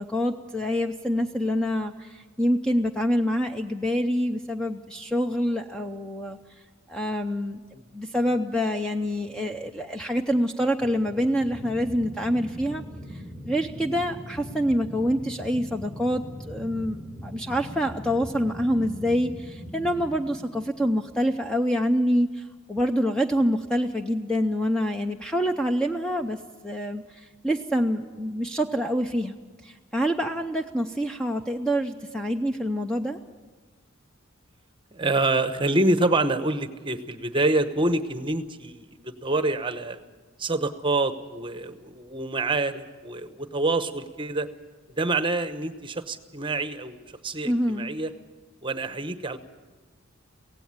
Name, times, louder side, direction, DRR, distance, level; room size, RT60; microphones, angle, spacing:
voice 1, 0.0-1.9 2.4-6.4 6.9-7.6 7.9-12.8 13.5-22.3 22.7-26.4 26.6-27.0 27.4-29.4 29.9-33.2 47.5-47.9, equal, 5° left, 5 dB, 0.6 m, -26 dB
sound 1, 10.8-21.7, equal, 20° left, 4.4 m, -41 dB
voice 2, 34.9-40.0 40.4-44.5 45.0-48.1 48.6-49.4, right 2 dB, 25° right, 10 dB, 0.9 m, -26 dB
17.0 x 16.0 x 9.5 m, 1.3 s
head